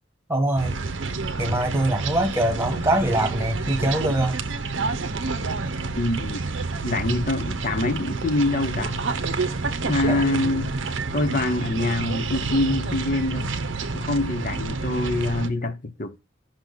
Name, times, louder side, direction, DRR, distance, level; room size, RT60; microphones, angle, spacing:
voice 1, 0.3-0.8 1.4-4.4 10.1-10.2, right 1 dB, 10° right, 1.5 m, -23 dB
sound 1, 0.6-15.5, right 3 dB, 65° right, 0.7 m, -29 dB
voice 2, 6.0-6.4 6.8-9.0 9.8-10.7 11.1-13.5 13.9-16.2, left 2 dB, 40° left, 0.8 m, -25 dB
6.4 x 5.9 x 4.0 m
head